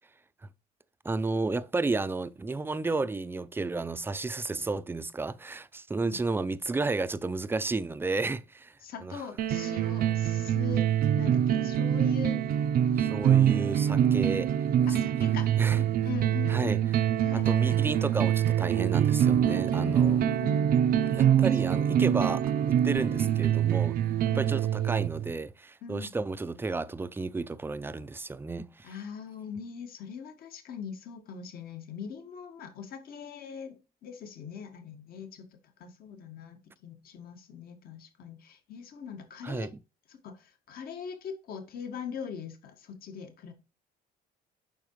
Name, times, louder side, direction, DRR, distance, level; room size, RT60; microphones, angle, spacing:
voice 1, 1.0-8.8 9.0-9.2 13.0-14.5 14.8-15.0 15.6-15.8 16.5-16.8 17.3-20.2 21.0-24.0 24.3-28.9 39.4-39.7, right 3 dB, 15° right, 0.5 m, -32 dB
voice 2, 8.8-12.4 12.9-13.0 14.9-16.8 17.2-17.8 19.7-20.7 21.2-21.5 24.3-24.6 25.8-26.1 28.8-35.5 35.8-39.7 40.1-43.5, left 7 dB, 60° left, 1.8 m, -41 dB
sound 1, 9.4-25.3, right 10 dB, 60° right, 0.7 m, -25 dB
8.8 x 5.8 x 3.1 m
cardioid pair, 110°, 17 cm